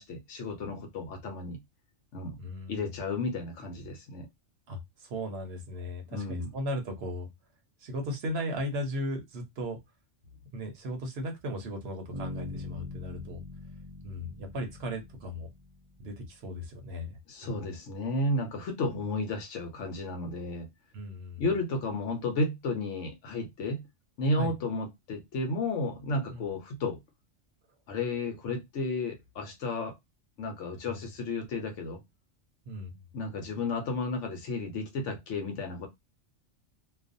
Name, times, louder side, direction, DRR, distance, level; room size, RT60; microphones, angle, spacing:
voice 1, 0.0-1.6 2.1-2.4 2.7-4.3 6.1-6.5 17.3-20.7 21.4-23.8 24.2-27.0 27.9-30.0 30.4-32.0 33.1-35.9, left 2 dB, 75° left, 1.0 m, -32 dB
voice 2, 2.4-2.9 4.7-7.3 7.8-9.8 10.5-13.4 14.0-15.5 16.0-17.7 20.9-21.4 24.4-24.5 26.3-26.5 30.8-31.0 32.7-33.0, equal, 60° right, 0.9 m, -36 dB
Bass guitar, 12.1-16.1, left 2 dB, 45° right, 0.4 m, -42 dB
2.4 x 2.3 x 2.5 m
omnidirectional pair, 1.3 m